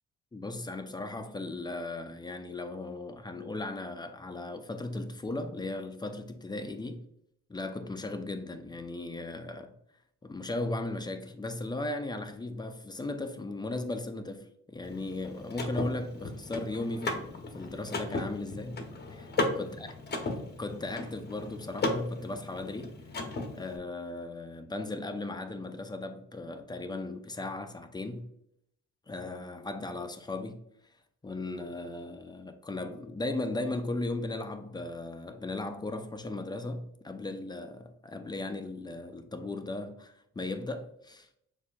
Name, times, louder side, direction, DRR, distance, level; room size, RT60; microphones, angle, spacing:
voice 1, 0.3-7.1 7.5-9.7 10.2-18.8 19.1-19.3 19.5-19.9 20.6-23.0 23.5-28.3 29.1-30.6 31.2-41.3, left 2 dB, 15° left, 0.4 m, -37 dB
Car / Mechanisms, 14.8-23.8, left 2 dB, 35° left, 0.8 m, -36 dB
6.4 x 2.6 x 2.3 m
cardioid pair, 90°, 30 cm